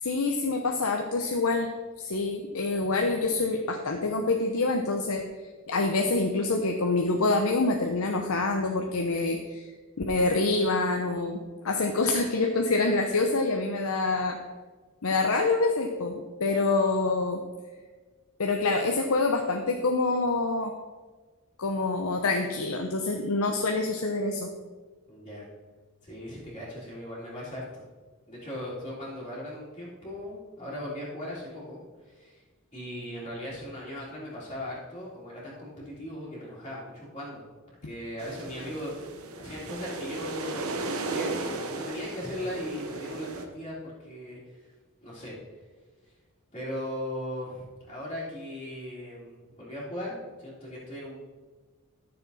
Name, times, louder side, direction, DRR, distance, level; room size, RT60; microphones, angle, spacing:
voice 1, 0.0-1.7 2.0-5.2 5.7-9.7 10.1-14.4 15.0-17.4 18.4-20.7 21.6-24.5, left 3 dB, 70° left, 3 dB, 0.8 m, -26 dB
voice 2, 25.1-25.5 26.0-27.8 28.3-31.8 32.0-32.4 32.7-37.4 37.8-39.1 39.4-44.7 45.0-45.4 46.0-46.1 46.5-51.1, left 1 dB, 25° left, -11 dB, 2.9 m, -38 dB
sound 1, 38.2-43.5, right 3 dB, 70° right, 1.1 m, -35 dB
13.0 x 6.8 x 4.1 m, 1.4 s
head